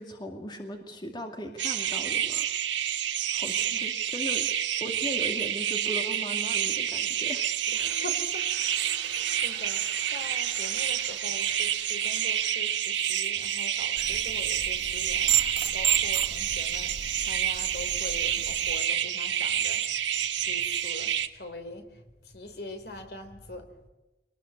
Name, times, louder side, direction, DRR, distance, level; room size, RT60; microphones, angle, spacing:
voice 1, 0.0-2.5 3.3-4.5 4.8-7.6 9.8-9.9, equal, 25° left, 3 dB, 2.3 m, -38 dB
sound 1, 1.6-21.3, right 10 dB, 80° right, 1.6 m, -29 dB
Toilet flush, 7.3-13.7, right 4 dB, 50° right, 6.6 m, -49 dB
voice 2, 7.8-20.1 20.4-23.9, left 1 dB, 60° left, 8 dB, 3.4 m, -43 dB
sound 2, 14.0-18.8, right 9 dB, 30° right, 1.5 m, -32 dB
24.5 x 19.5 x 8.5 m, 1.0 s
head